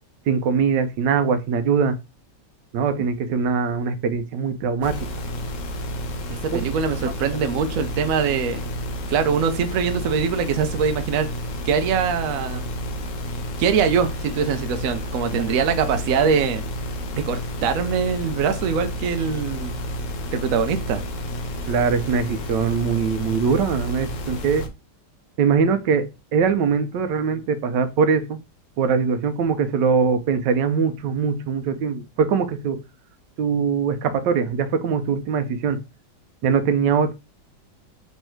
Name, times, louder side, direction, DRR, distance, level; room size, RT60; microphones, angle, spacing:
voice 1, 0.3-2.0 2.7-5.1 6.5-6.6 7.0-7.1 15.4-15.5 21.7-24.7 25.4-28.4 28.8-32.8 33.4-35.8 36.4-37.1, right 6 dB, 80° right, 1.2 m, -22 dB
sound 1, 4.8-24.7, equal, 60° left, 0.9 m, -31 dB
voice 2, 6.3-8.7 9.1-11.3 11.6-12.7 13.6-16.6 17.1-19.8 20.3-21.0, right 6 dB, 65° right, 0.9 m, -23 dB
3.5 x 3.1 x 4.4 m
omnidirectional pair, 1.9 m